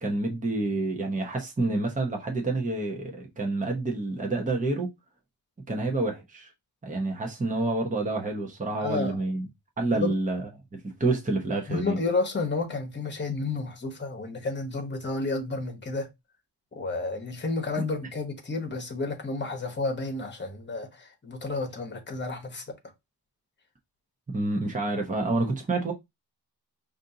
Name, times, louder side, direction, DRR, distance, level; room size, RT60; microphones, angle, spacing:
voice 1, 0.0-4.9 5.7-6.5 6.8-9.5 9.8-10.5 10.8-12.0 24.3-25.9, right 2 dB, 20° right, 0.8 m, -28 dB
voice 2, 8.8-9.2 9.9-10.1 11.7-16.1 16.7-22.6, left 3 dB, 25° left, 1.1 m, -31 dB
5.1 x 2.6 x 2.7 m
wide cardioid pair, 130°, 39 cm